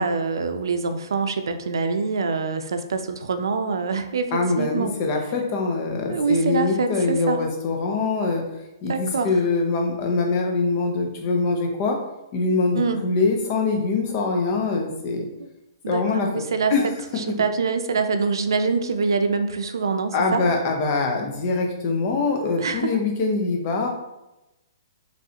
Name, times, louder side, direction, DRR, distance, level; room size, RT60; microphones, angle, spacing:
voice 1, 0.0-5.0 6.1-7.4 8.9-9.3 12.7-13.1 15.4-15.5 15.8-16.7 17.2-20.4 22.6-23.0, right 4 dB, 90° right, 8 dB, 0.5 m, -25 dB
voice 2, 4.3-8.4 8.8-12.0 12.3-15.3 15.9-16.3 16.7-16.8 17.1-17.2 20.1-24.1, left 3 dB, 30° left, 2 dB, 0.7 m, -23 dB
5.1 x 3.1 x 2.8 m, 0.95 s
hypercardioid pair, 170°, 2 cm